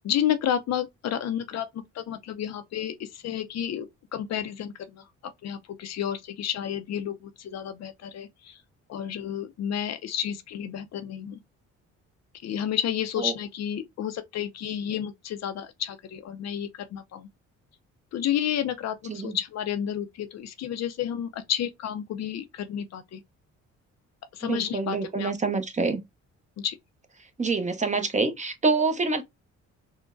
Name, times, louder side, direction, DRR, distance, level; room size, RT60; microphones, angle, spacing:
voice 1, 0.0-5.1 5.4-8.6 8.9-11.4 12.4-17.3 18.1-23.2 24.3-25.3 26.6-26.8, left 10 dB, 60° left, 0.5 m, -31 dB
voice 2, 24.4-26.0 27.4-29.2, right 4 dB, 25° right, 0.7 m, -26 dB
3.7 x 2.1 x 2.5 m
cardioid pair, 90°, 30 cm